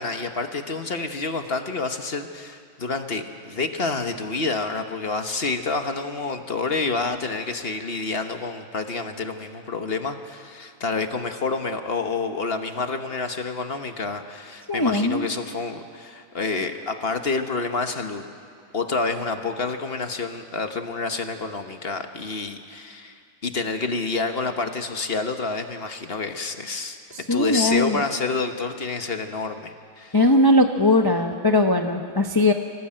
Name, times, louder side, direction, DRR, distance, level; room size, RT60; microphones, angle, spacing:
voice 1, 0.0-18.2 18.7-27.0 27.3-30.2, left 3 dB, 40° left, 6 dB, 1.3 m, -28 dB
voice 2, 14.7-15.3 27.3-28.0 30.1-32.5, left 1 dB, 20° left, 4 dB, 0.7 m, -19 dB
24.5 x 17.5 x 8.9 m, 2.2 s
omnidirectional pair, 1.6 m